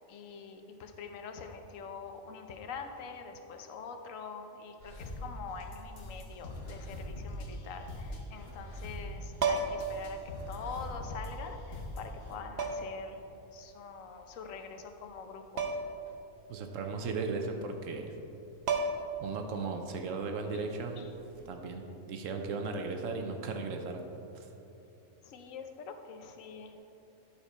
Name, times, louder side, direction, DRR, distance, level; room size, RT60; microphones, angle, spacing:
voice 1, 0.1-13.2 13.5-15.7 20.5-20.6 21.0-21.1 25.2-26.8, left 5 dB, 85° left, 6 dB, 1.1 m, -44 dB
sound 1, 4.8-12.4, left 1 dB, 55° left, 1.2 m, -42 dB
sound 2, 9.4-10.0 11.3-11.4 12.6-13.0 15.6-16.0 16.3-16.4 18.2-18.3 18.7-19.2 21.2-21.4, right 4 dB, 55° right, 0.8 m, -32 dB
voice 2, 16.5-18.1 19.2-21.0 21.5-24.0 24.3-24.5, right 4 dB, 85° right, 4 dB, 1.1 m, -36 dB
10.5 x 5.0 x 4.3 m, 2.9 s
omnidirectional pair, 1.3 m